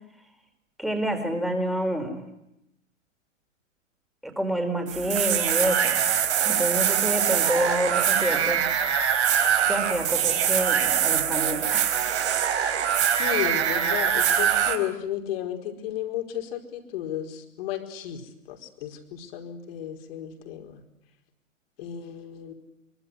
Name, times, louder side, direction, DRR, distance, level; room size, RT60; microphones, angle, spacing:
voice 1, 0.8-2.2 4.2-8.6 9.7-12.0, right 1 dB, ahead, 5 dB, 4.9 m, -28 dB
sound 1, 4.9-14.8, right 8 dB, 55° right, 4.2 m, -23 dB
voice 2, 12.5-18.2 18.5-20.8 21.8-22.5, left 11 dB, 45° left, 4 dB, 4.8 m, -33 dB
24.5 x 24.0 x 9.7 m, 0.84 s
figure-of-eight pair, 115°, 39 cm